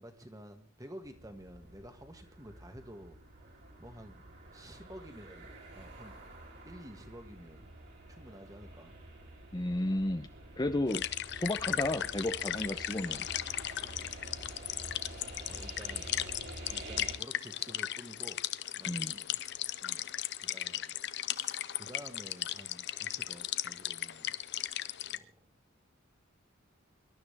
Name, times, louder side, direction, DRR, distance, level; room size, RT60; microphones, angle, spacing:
voice 1, 0.0-3.2 3.8-5.5 5.8-6.2 6.6-7.7 8.1-8.9 15.2-16.1 16.7-18.5 18.8-19.4 19.8-20.1 20.4-21.0 21.3-24.3 25.1-25.4, equal, 15° right, 6 dB, 1.9 m, -51 dB
sound 1, 1.0-17.1, right 1 dB, 55° right, 4.7 m, -49 dB
voice 2, 9.5-10.3 10.6-11.0 11.3-13.3 18.9-19.2, left 1 dB, 20° left, 7 dB, 0.8 m, -33 dB
sound 2, 10.9-25.2, left 12 dB, 55° left, 0.6 m, -37 dB
24.5 x 12.5 x 3.5 m, 0.36 s
head